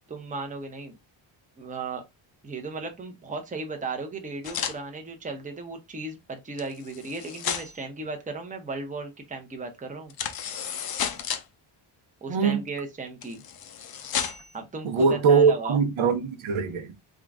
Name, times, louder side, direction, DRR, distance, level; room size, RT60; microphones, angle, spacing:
voice 1, 0.1-1.0 1.6-2.0 2.4-10.1 12.2-13.4 14.5-15.8, right 3 dB, 15° right, 0.7 m, -35 dB
sound 1, 4.4-4.8 6.6-7.8 10.1-11.4 13.2-14.5, left 8 dB, 50° left, 0.6 m, -32 dB
voice 2, 12.3-12.6 14.8-16.9, right 5 dB, 75° right, 0.9 m, -22 dB
3.7 x 2.5 x 3.4 m
wide cardioid pair, 135°, 49 cm